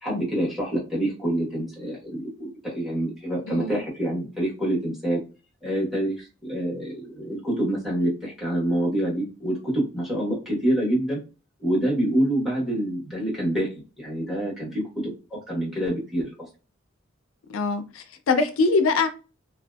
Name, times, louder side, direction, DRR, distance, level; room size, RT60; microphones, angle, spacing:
voice 1, 0.0-5.2 5.6-11.2 11.6-13.7 14.0-16.3, right 1 dB, ahead, 1.1 m, -26 dB
voice 2, 3.5-3.8 17.5-19.1, left 3 dB, 80° left, 0.4 m, -23 dB
2.6 x 2.2 x 2.2 m
head